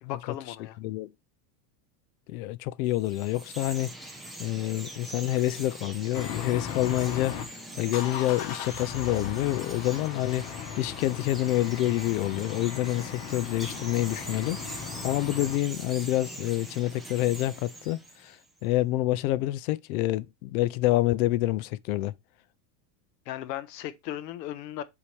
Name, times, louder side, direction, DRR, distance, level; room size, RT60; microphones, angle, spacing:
voice 1, 0.0-0.8 23.3-24.8, left 12 dB, 85° left, 1.2 m, -36 dB
voice 2, 2.3-3.9 4.4-7.4 7.8-10.5 10.8-18.4 18.6-22.1, left 16 dB, 60° left, 0.6 m, -27 dB
Chirp tweet, 2.9-18.5, right 1 dB, ahead, 0.9 m, -43 dB
sound 1, 6.1-7.4 7.9-15.6, left 8 dB, 45° left, 1.3 m, -37 dB
8.5 x 4.8 x 3.4 m
supercardioid pair, 165°, 49 cm